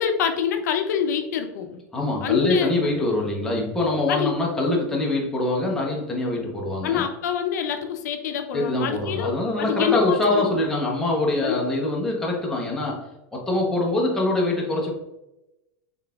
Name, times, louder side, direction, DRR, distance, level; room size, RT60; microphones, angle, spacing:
voice 1, 0.0-1.8 2.2-2.7 4.1-4.3 6.8-10.5 11.4-11.6, left 8 dB, 75° left, 5 dB, 0.5 m, -26 dB
voice 2, 1.9-7.1 8.5-14.9, left 2 dB, 5° left, -3 dB, 0.7 m, -24 dB
3.8 x 3.7 x 2.3 m, 0.93 s
supercardioid pair, 160°, 9 cm